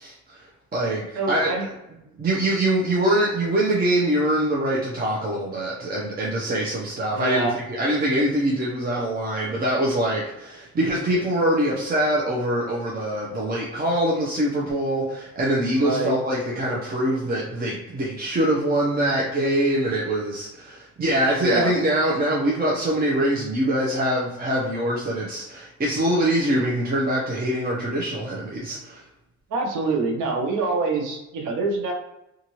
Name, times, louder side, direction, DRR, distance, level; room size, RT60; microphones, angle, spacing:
voice 1, 0.0-1.5 2.2-29.0, right 1 dB, 30° right, -4 dB, 0.7 m, -24 dB
voice 2, 1.1-1.7 7.1-7.6 15.8-16.1 21.4-21.8 29.5-31.9, right 3 dB, 80° right, 1 dB, 0.7 m, -25 dB
2.6 x 2.5 x 3.0 m, 0.89 s
cardioid pair, 90°, 30 cm